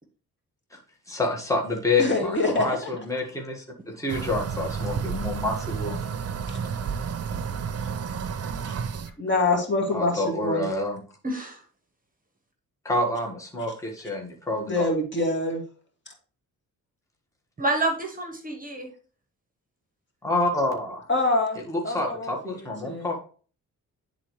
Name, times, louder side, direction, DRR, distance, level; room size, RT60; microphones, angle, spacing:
voice 1, 1.1-6.0 9.9-11.0 12.8-14.9 20.2-21.0 21.7-23.2, left 2 dB, 10° left, 0 dB, 1.5 m, -28 dB
voice 2, 2.0-2.9 6.5-6.6 8.7-8.8 9.2-10.7 14.7-15.6 16.1-16.2 21.1-21.6 21.8-23.2, left 2 dB, 35° left, 0 dB, 2.2 m, -26 dB
sound 1, 4.1-9.1, right 6 dB, 45° right, 0.6 m, -31 dB
voice 3, 11.2-11.6 17.6-18.9, right 2 dB, 25° right, 3 dB, 1.2 m, -28 dB
10.0 x 3.9 x 3.1 m, 0.41 s
cardioid pair, 90°, 33 cm